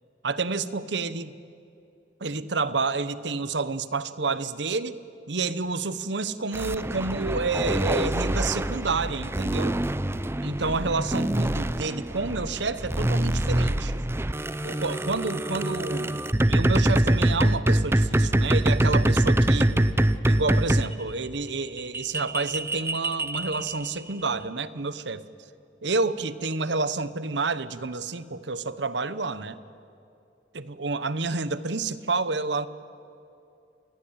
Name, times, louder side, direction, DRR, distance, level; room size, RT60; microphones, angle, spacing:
voice 1, 0.2-1.3 2.2-5.0 5.3-9.8 10.4-14.0 14.6-19.7 20.3-25.2 25.8-29.6 30.5-32.7, right 3 dB, 65° right, 15 dB, 1.1 m, -29 dB
sound 1, 6.5-20.9 21.6-24.0, right 1 dB, 15° right, 0.6 m, -24 dB
28.5 x 20.5 x 8.9 m, 2.6 s
head